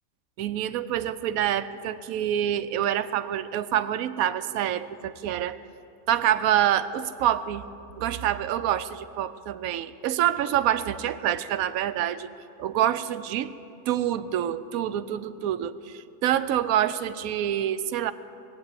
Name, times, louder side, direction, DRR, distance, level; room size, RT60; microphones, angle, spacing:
voice 1, 0.4-5.6 6.1-7.7 8.0-12.3 12.6-13.5 13.9-18.1, right 11 dB, 90° right, 13 dB, 1.0 m, -26 dB
19.0 x 8.7 x 8.3 m, 2.6 s
omnidirectional pair, 1.5 m